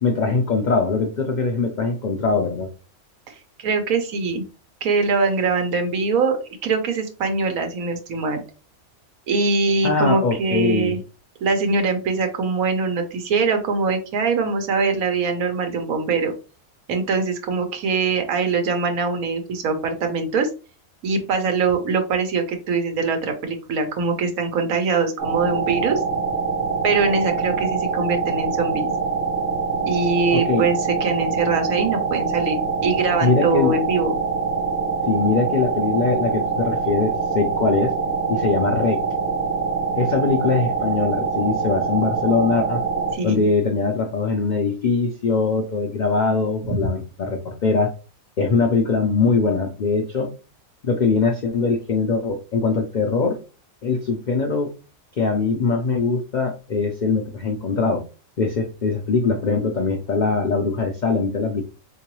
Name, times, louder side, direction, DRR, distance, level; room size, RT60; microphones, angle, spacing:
voice 1, 0.0-2.7 9.8-11.0 30.3-30.7 33.2-33.8 35.1-37.9 38.3-39.0 40.0-42.8 43.2-47.9 48.4-50.3 50.8-53.4 53.8-54.7 55.2-58.0 58.4-61.6, left 4 dB, 85° left, 4 dB, 0.4 m, -22 dB
voice 2, 3.3-4.4 4.8-8.4 9.3-11.0 11.4-16.3 16.9-20.5 21.0-26.0 26.8-28.9 29.8-34.2 43.1-43.5 46.6-46.8, right 4 dB, 80° right, 5 dB, 1.3 m, -23 dB
sound 1, 25.2-43.1, right 5 dB, 60° right, 1.3 m, -24 dB
3.8 x 3.0 x 2.9 m, 0.33 s
omnidirectional pair, 1.5 m